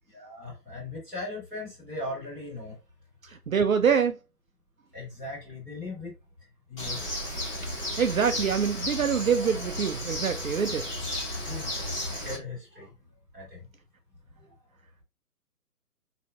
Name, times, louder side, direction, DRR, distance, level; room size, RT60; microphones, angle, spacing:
voice 1, 0.1-2.8 4.9-6.1 6.7-7.0 11.4-11.8 12.1-12.9 13.3-13.6, left 2 dB, ahead, 1.7 m, -38 dB
voice 2, 3.2-4.2 7.6-10.9, right 6 dB, 60° right, 0.5 m, -25 dB
Bird, 6.8-12.4, left 1 dB, 20° left, 1.3 m, -33 dB
4.2 x 3.8 x 2.4 m
figure-of-eight pair, 145°, 47 cm